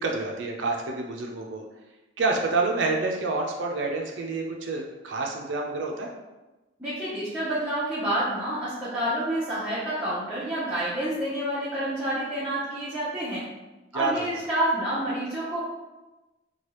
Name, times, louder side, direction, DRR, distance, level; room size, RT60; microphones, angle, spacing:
voice 1, 0.0-1.6 2.2-6.1 13.9-14.2, right 3 dB, 75° right, 1 dB, 0.4 m, -28 dB
voice 2, 6.8-13.4 13.9-15.6, right 1 dB, 5° right, -12 dB, 0.6 m, -28 dB
3.2 x 2.3 x 2.9 m, 1.1 s
head